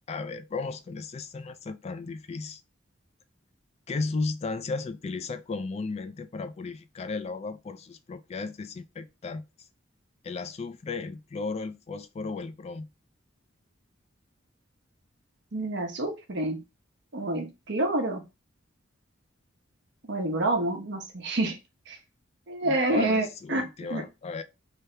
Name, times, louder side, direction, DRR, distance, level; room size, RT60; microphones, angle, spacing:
voice 1, 0.1-2.6 3.9-9.4 10.2-12.9 22.6-24.4, left 4 dB, 30° left, 0.3 m, -35 dB
voice 2, 15.5-16.6 17.1-18.2 20.1-21.6 21.9-22.0 22.5-24.0, right 2 dB, 60° right, 0.9 m, -28 dB
3.3 x 2.8 x 3.2 m
head